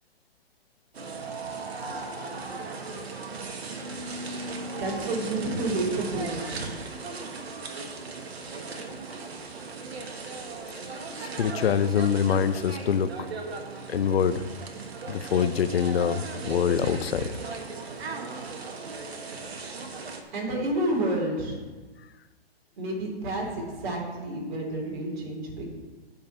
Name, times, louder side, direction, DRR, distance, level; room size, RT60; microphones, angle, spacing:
sound 1, 0.9-20.2, right 3 dB, 80° right, 1.5 m, -37 dB
voice 1, 4.7-6.7 20.3-21.6 22.8-25.7, right 1 dB, 50° right, -2 dB, 3.7 m, -30 dB
voice 2, 11.2-13.3 13.9-14.5 15.1-17.3, left 7 dB, 70° left, 12 dB, 0.7 m, -25 dB
8.8 x 5.7 x 7.3 m, 1.3 s
hypercardioid pair, 145°, 31 cm